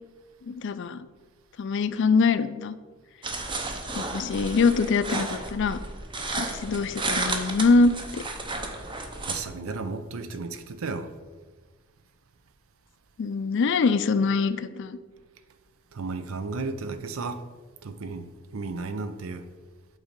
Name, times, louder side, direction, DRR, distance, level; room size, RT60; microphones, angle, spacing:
voice 1, 0.4-1.1 1.6-2.7 3.9-5.8 6.4-8.2 13.2-15.0, left 4 dB, 60° left, 0.4 m, -24 dB
sound 1, 3.2-9.4, right 3 dB, 25° right, 0.7 m, -33 dB
voice 2, 9.3-11.1 15.9-17.4 17.8-19.5, right 3 dB, 75° right, 0.6 m, -34 dB
8.1 x 4.0 x 5.1 m
head